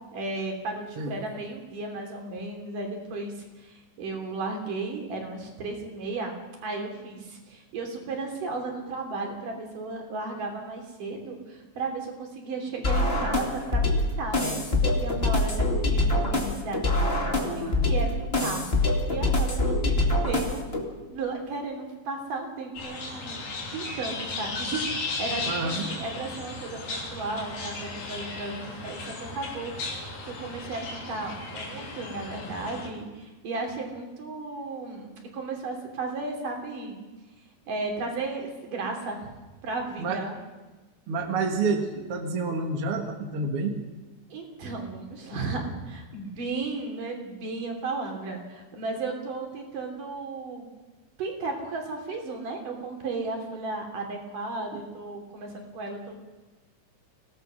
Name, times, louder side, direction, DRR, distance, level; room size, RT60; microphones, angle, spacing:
voice 1, 0.1-20.7 21.1-23.4 23.7-37.0 37.7-39.4 39.6-40.4 44.3-50.7 51.2-56.2, right 3 dB, 65° right, 2 dB, 4.8 m, -35 dB
sound 1, 12.8-20.8, left 2 dB, 20° left, 1.9 m, -25 dB
voice 2, 17.4-17.9 25.5-25.9 40.0-40.2 41.1-43.8, right 3 dB, 50° right, 4 dB, 2.2 m, -29 dB
sound 2, 22.7-32.9, left 3 dB, 70° left, 4.8 m, -35 dB
25.0 x 17.5 x 6.4 m, 1.2 s
omnidirectional pair, 4.1 m